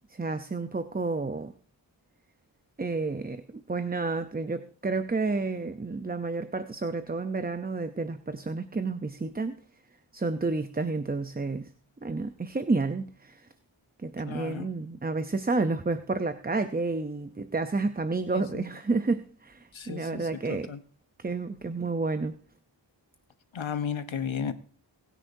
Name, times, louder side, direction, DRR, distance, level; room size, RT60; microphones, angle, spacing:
voice 1, 0.1-1.5 2.8-9.6 10.1-11.7 12.0-13.5 14.0-20.7 21.2-22.3, right 3 dB, 20° right, 0.6 m, -30 dB
voice 2, 14.3-14.7 18.3-18.6 19.7-20.8 23.5-24.5, left 7 dB, 85° left, 1.1 m, -34 dB
21.0 x 10.0 x 2.7 m
wide cardioid pair, 60°, 46 cm